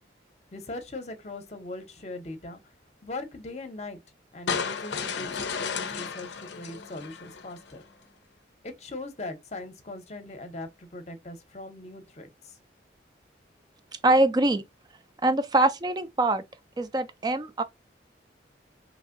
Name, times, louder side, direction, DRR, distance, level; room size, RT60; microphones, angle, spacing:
voice 1, 0.5-2.6 3.0-4.0 4.3-7.8 8.6-12.6, left 2 dB, 35° left, 0.7 m, -40 dB
sound 1, 4.5-7.7, left 6 dB, 70° left, 0.5 m, -33 dB
voice 2, 14.0-14.6 15.2-16.4 16.8-17.6, right 2 dB, 20° right, 0.4 m, -23 dB
3.0 x 2.6 x 2.5 m
head